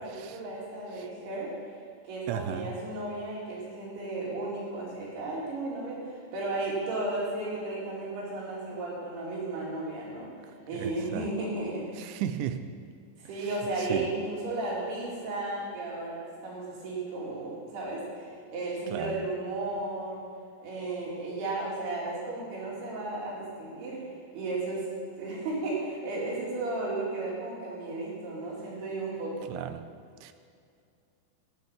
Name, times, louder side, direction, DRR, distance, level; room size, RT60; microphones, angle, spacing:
voice 1, 0.0-1.5 2.0-12.2 13.2-20.2 20.6-24.9 25.2-29.5, right 2 dB, 65° right, -4 dB, 4.8 m, -34 dB
voice 2, 2.3-2.7 10.7-11.3 12.0-12.7 13.4-13.5 13.8-14.1 18.9-19.2 29.5-29.9 30.2-30.3, right 10 dB, 90° right, 10 dB, 3.0 m, -35 dB
13.0 x 9.4 x 5.9 m, 2.4 s
omnidirectional pair, 5.1 m